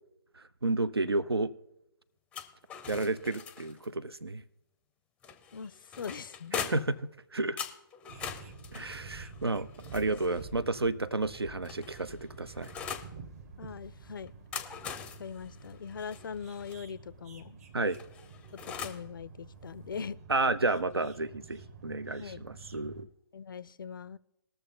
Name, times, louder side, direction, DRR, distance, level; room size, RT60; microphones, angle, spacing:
voice 1, 0.6-1.5 2.9-4.4 6.5-7.0 7.3-7.6 8.7-12.7 17.7-18.0 20.3-23.1, right 2 dB, 85° right, 18 dB, 0.6 m, -31 dB
sound 1, 2.3-3.9 5.2-7.0 7.6-10.5 11.3-13.1 14.3-16.8 17.9-19.1, left 7 dB, 10° left, 0.5 m, -42 dB
voice 2, 5.5-6.7 13.6-14.3 15.2-17.6 18.6-20.2 22.2-22.4 23.3-24.2, left 6 dB, 60° left, 19 dB, 0.4 m, -41 dB
sound 2, 8.1-23.0, right 4 dB, 40° right, 1.1 m, -49 dB
20.0 x 6.8 x 3.7 m, 0.87 s
figure-of-eight pair, 130°, 13 cm